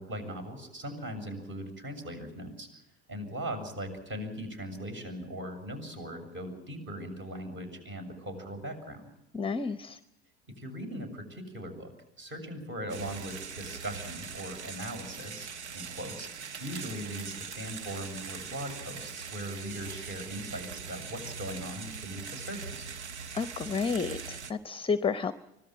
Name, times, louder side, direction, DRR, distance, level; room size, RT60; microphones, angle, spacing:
voice 1, 0.0-2.7 3.1-9.1 10.6-11.9 12.2-22.9, equal, 35° right, 6 dB, 7.0 m, -39 dB
voice 2, 9.3-10.0 23.3-25.3, left 5 dB, 15° left, 13 dB, 0.8 m, -31 dB
sound 1, 12.9-24.5, right 6 dB, 85° right, 1.2 m, -41 dB
25.0 x 17.5 x 7.4 m, 0.91 s
hypercardioid pair, 70°, 33 cm